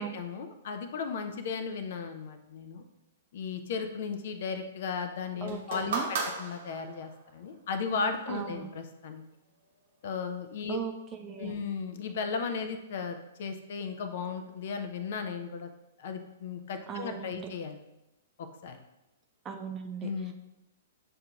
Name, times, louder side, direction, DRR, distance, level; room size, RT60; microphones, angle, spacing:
voice 1, 0.0-2.8 3.3-9.2 10.0-10.8 11.4-15.7 16.0-17.8 18.4-18.8 20.0-20.3, left 5 dB, 50° left, 7 dB, 0.4 m, -35 dB
voice 2, 5.4-6.1 8.3-8.7 10.7-11.5 16.9-17.5 19.4-20.3, right 7 dB, 20° right, 3 dB, 0.5 m, -38 dB
sound 1, 5.5-7.2 8.2-8.3, right 4 dB, 55° right, 1.0 m, -35 dB
7.5 x 2.8 x 2.3 m, 0.94 s
figure-of-eight pair, 110°, 0 cm